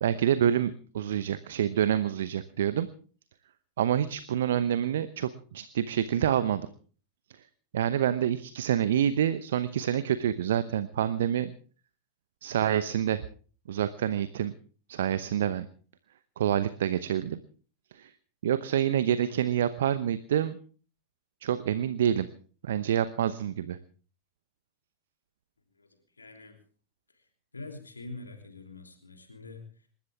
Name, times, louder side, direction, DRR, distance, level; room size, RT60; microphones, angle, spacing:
voice 1, 0.0-2.9 3.8-6.7 7.7-11.5 12.4-13.3 13.7-14.5 14.9-15.7 16.4-17.4 17.9-18.1 18.4-20.6 21.4-22.3 22.6-23.8, right 10 dB, 60° right, 14 dB, 0.9 m, -27 dB
voice 2, 26.2-26.6 27.1-27.2 27.5-29.9, left 2 dB, 80° left, 4 dB, 3.2 m, -45 dB
27.5 x 13.5 x 3.6 m, 0.41 s
figure-of-eight pair, 90°, 0 cm